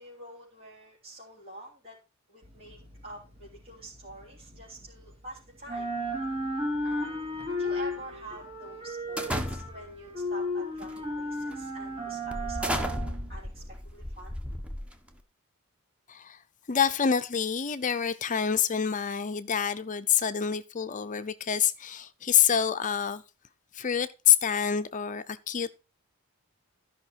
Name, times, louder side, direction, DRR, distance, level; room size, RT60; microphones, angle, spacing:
voice 1, 0.0-2.0 2.3-5.9 6.8-7.2 7.6-13.0 13.3-14.3, right 1 dB, 45° right, 3.7 m, -47 dB
sound 1, 2.4-5.3 5.6-13.7, left 1 dB, 25° right, 2.5 m, -34 dB
sound 2, 9.2-10.0 10.8-11.1 11.5-11.6 12.3-15.2, equal, 5° right, 1.1 m, -34 dB
voice 2, 16.1-16.4 16.7-23.2 23.7-25.7, left 8 dB, 35° left, 0.6 m, -27 dB
13.5 x 5.7 x 4.5 m
head